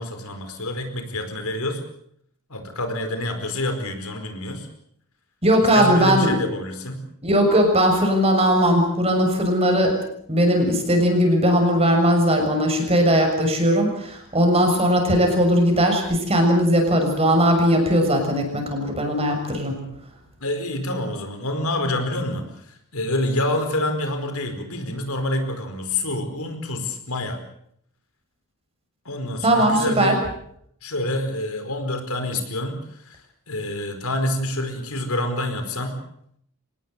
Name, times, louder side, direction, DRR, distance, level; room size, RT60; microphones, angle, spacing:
voice 1, 0.0-1.8 2.5-4.7 5.7-7.0 20.4-27.4 29.0-30.2 30.8-33.2 33.5-36.0, left 1 dB, 70° left, 6 dB, 4.8 m, -27 dB
voice 2, 5.4-6.4 7.2-10.0 10.3-19.8 29.4-30.1, equal, 30° right, 3 dB, 6.8 m, -19 dB
25.0 x 19.0 x 8.2 m, 0.70 s
head